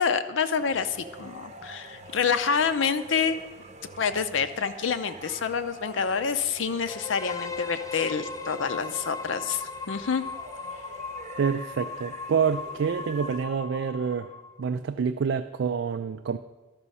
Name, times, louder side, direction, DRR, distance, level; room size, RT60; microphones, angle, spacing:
voice 1, 0.0-3.4 4.0-10.2, left 6 dB, 85° left, 10 dB, 0.6 m, -27 dB
sound 1, 0.5-13.4, right 2 dB, 35° right, 0.7 m, -45 dB
sound 2, 6.9-14.7, left 5 dB, 20° left, 0.3 m, -38 dB
voice 2, 11.4-14.3 14.6-16.4, right 6 dB, 70° right, 8 dB, 0.3 m, -27 dB
12.5 x 6.1 x 5.5 m, 1.2 s
head